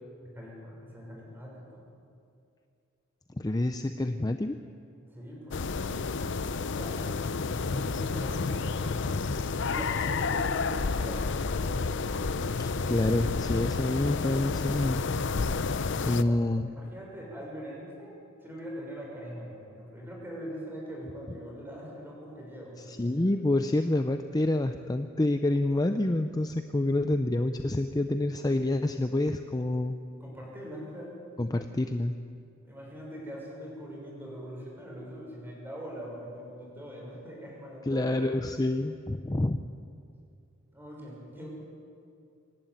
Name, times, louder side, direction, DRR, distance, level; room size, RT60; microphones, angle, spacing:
voice 1, 0.2-1.9 5.0-6.3 6.6-7.0 7.6-9.3 9.6-12.1 16.3-16.4 16.7-23.1 30.2-31.2 32.6-38.3 39.2-39.4 40.7-41.5, equal, 10° right, -3 dB, 6.1 m, -42 dB
voice 2, 3.4-4.6 12.6-15.1 16.0-16.7 22.9-30.0 31.4-32.2 37.9-39.6, left 1 dB, 20° left, 8 dB, 0.5 m, -28 dB
sound 1, 5.5-16.2, left 4 dB, 60° left, 0.6 m, -30 dB
26.0 x 11.5 x 9.3 m, 2.4 s
head